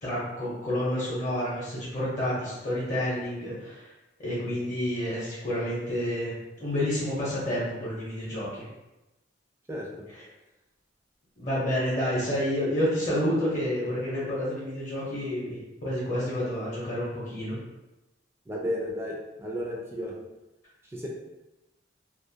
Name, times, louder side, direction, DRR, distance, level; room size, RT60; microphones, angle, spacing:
voice 1, 0.0-3.9 4.2-8.6 11.4-17.6, equal, 45° left, -7 dB, 0.7 m, -29 dB
voice 2, 18.5-20.1 20.9-21.1, equal, 15° right, -2 dB, 0.3 m, -33 dB
2.4 x 2.0 x 2.7 m, 1.0 s
head